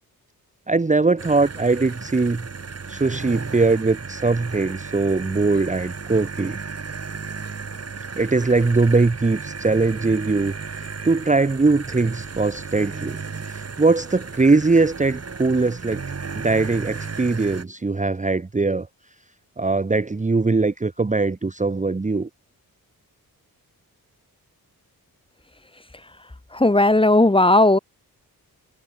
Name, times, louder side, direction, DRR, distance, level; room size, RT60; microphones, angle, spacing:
voice 1, 0.7-2.5 2.9-6.6 8.2-13.2 13.8-16.0 16.3-18.9 19.6-22.3, right 3 dB, 20° right, 1.1 m, -21 dB
sound 1, 1.2-17.6, right 5 dB, 45° right, 3.8 m, -34 dB
voice 2, 26.5-27.8, left 2 dB, 15° left, 2.2 m, -15 dB
wide cardioid pair, 110°, 36 cm